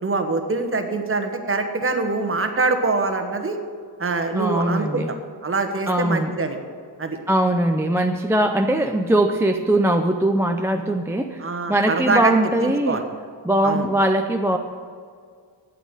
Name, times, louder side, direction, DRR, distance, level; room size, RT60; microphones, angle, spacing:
voice 1, 0.0-3.6 4.0-5.2 5.4-6.6 7.0-7.2 11.4-12.3 12.6-13.0 13.6-13.9, right 3 dB, 30° right, 5 dB, 1.3 m, -24 dB
voice 2, 4.3-5.1 5.9-6.3 7.3-13.0 13.4-14.6, right 1 dB, 5° right, 3 dB, 0.5 m, -21 dB
8.7 x 8.6 x 9.0 m, 2.1 s
wide cardioid pair, 125°, 43 cm